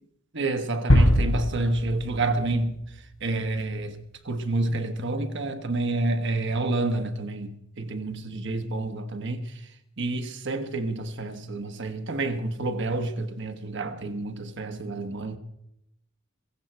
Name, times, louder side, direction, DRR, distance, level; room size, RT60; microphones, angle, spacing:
voice 1, 0.3-2.8 3.2-4.0 4.2-9.6 10.0-15.4, right 2 dB, 55° right, 1.1 m, -29 dB
sound 1, 0.9-2.8, equal, 75° left, 3.6 m, -22 dB
17.0 x 15.0 x 4.5 m
head